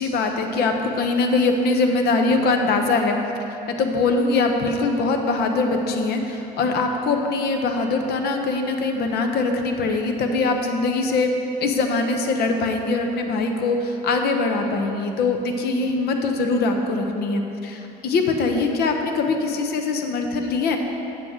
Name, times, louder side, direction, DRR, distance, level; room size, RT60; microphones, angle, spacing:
voice 1, 0.0-3.2 3.5-11.3 11.6-20.8, left 3 dB, 70° left, 4 dB, 0.9 m, -22 dB
9.4 x 7.8 x 3.7 m, 3.0 s
cardioid pair, 110°, 17 cm